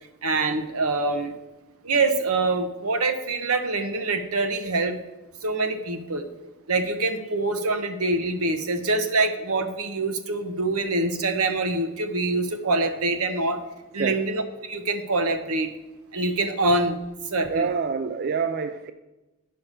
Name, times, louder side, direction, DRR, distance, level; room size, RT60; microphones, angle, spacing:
voice 1, 0.2-1.3 1.8-5.0 5.4-6.3 6.7-13.6 13.9-15.7 16.1-17.0 17.3-17.7, right 3 dB, 85° right, 8 dB, 1.0 m, -25 dB
voice 2, 17.5-18.9, right 5 dB, 45° right, 9 dB, 0.4 m, -27 dB
9.9 x 5.7 x 6.6 m, 1.0 s
head